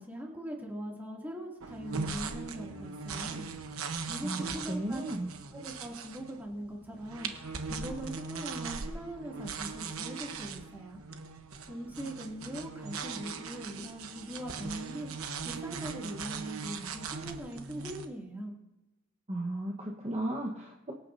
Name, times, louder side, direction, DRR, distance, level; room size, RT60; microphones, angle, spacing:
voice 1, 0.0-3.5 4.1-5.0 5.5-7.3 7.7-11.0 11.7-15.1 15.4-18.5, right 1 dB, 10° right, -2 dB, 2.5 m, -41 dB
sound 1, 1.6-18.1, right 5 dB, 85° right, 1.0 m, -40 dB
voice 2, 4.2-5.3 19.3-20.9, right 1 dB, 30° right, -1 dB, 1.2 m, -35 dB
24.0 x 9.5 x 2.7 m, 0.99 s
head